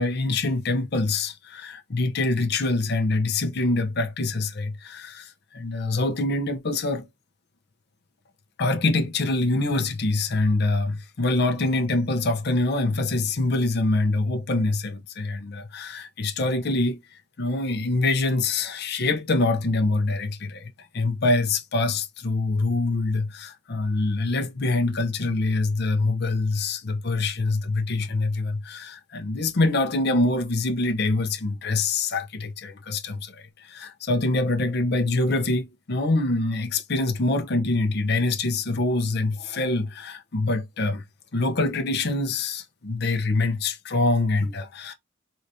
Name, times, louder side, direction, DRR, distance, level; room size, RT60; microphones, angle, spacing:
voice 1, 0.0-7.1 8.6-17.0 17.4-41.0 41.3-44.9, left 2 dB, 55° left, 0.7 m, -25 dB
4.0 x 2.6 x 3.3 m
head